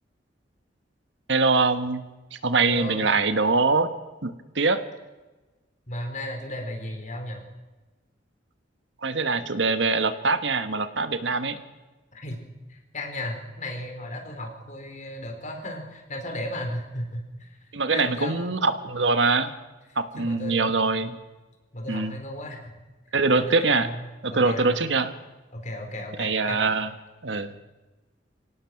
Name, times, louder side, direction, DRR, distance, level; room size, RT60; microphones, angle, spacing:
voice 1, 1.3-2.0 2.3-3.9 4.2-4.8 9.0-11.6 17.7-19.5 20.0-21.2 21.9-22.2 23.1-23.9 24.2-25.1 26.2-26.9 27.2-27.5, right 3 dB, 75° right, 10 dB, 1.4 m, -23 dB
voice 2, 2.6-3.1 5.9-7.4 12.1-12.4 12.7-17.6 17.9-18.5 20.1-20.8 21.7-22.7 23.3-24.0 24.3-24.7 25.5-26.8, left 1 dB, 45° left, 3 dB, 4.3 m, -35 dB
24.0 x 18.0 x 6.0 m, 1.2 s
head